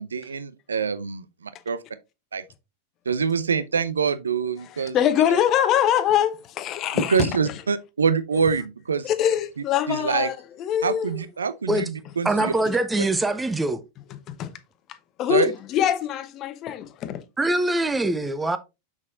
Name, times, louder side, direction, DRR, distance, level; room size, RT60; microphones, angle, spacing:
voice 1, 0.0-1.8 2.3-2.4 3.1-5.0 5.3-5.4 6.9-9.0 9.9-10.3 10.8-12.5 15.3-15.5, right 6 dB, 70° right, 0.6 m, -25 dB
voice 2, 4.6-7.5 9.0-11.2 14.3-14.5 15.2-17.2, left 10 dB, 35° left, 0.9 m, -24 dB
voice 3, 12.2-13.8 17.4-18.6, right 2 dB, 10° right, 0.7 m, -23 dB
7.2 x 6.3 x 2.6 m
figure-of-eight pair, 90°, 0 cm